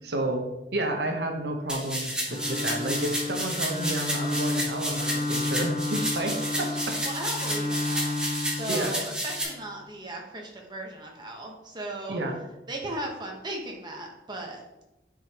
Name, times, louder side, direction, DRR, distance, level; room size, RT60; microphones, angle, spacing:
voice 1, 0.0-0.4 0.7-7.0 8.7-9.0 12.1-12.4, right 1 dB, 70° right, 3 dB, 1.0 m, -31 dB
sound 1, 1.7-9.4, equal, 5° right, 1.3 m, -31 dB
Bowed string instrument, 2.2-9.4, left 2 dB, 25° left, 0.9 m, -32 dB
voice 2, 7.0-8.2 8.5-12.2 12.7-14.6, right 1 dB, 25° right, 0 dB, 1.2 m, -37 dB
9.8 x 5.0 x 3.0 m, 1.0 s
head